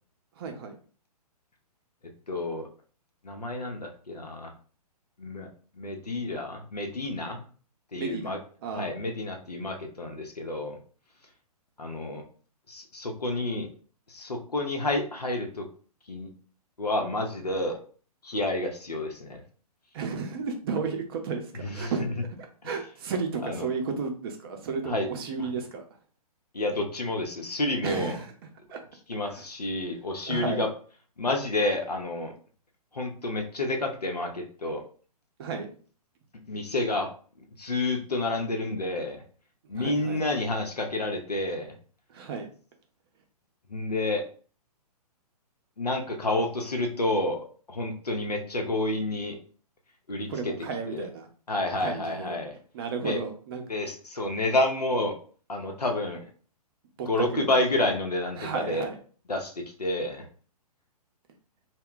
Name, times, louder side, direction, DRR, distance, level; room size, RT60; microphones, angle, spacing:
voice 1, 0.4-0.8 7.9-8.9 19.9-22.0 22.6-25.8 27.8-28.3 28.7-28.8 29.3-29.4 30.3-30.6 35.4-35.7 39.8-40.2 42.1-42.5 50.3-51.3 51.8-52.4 52.7-53.6 57.0-57.1 57.4-57.5 58.4-59.0, right 5 dB, 40° right, 4 dB, 0.6 m, -33 dB
voice 2, 2.3-2.7 3.2-4.5 5.2-5.5 5.7-7.4 7.9-8.4 8.7-10.8 11.8-12.2 12.7-13.7 14.1-15.7 16.1-16.3 16.8-17.8 18.2-19.4 21.5-22.1 23.4-23.7 24.9-25.1 25.4-25.5 26.5-28.2 29.1-30.7 31.2-32.3 32.9-34.8 36.5-37.1 37.6-39.2 39.7-41.8 43.7-44.2 45.8-47.4 47.7-49.4 50.1-50.3 50.9-51.1 51.5-52.5 53.0-53.2 53.7-55.1 55.5-56.2 57.1-58.9 59.3-60.3, left 2 dB, 85° left, 2 dB, 0.7 m, -29 dB
2.2 x 2.1 x 3.7 m, 0.41 s
figure-of-eight pair, 120°, 20 cm